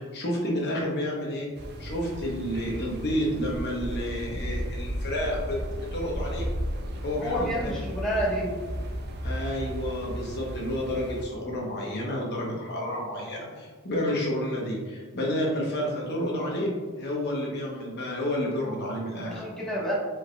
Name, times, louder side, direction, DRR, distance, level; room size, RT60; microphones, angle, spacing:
voice 1, 0.0-1.5 1.8-6.5 7.0-7.8 9.2-19.4, equal, 50° left, -2 dB, 0.9 m, -30 dB
sound 1, 1.5-11.2, equal, 50° right, 0.5 m, -34 dB
voice 2, 7.2-8.5 19.3-19.9, equal, 5° left, -7 dB, 1.1 m, -29 dB
4.6 x 4.6 x 2.2 m, 1.4 s
head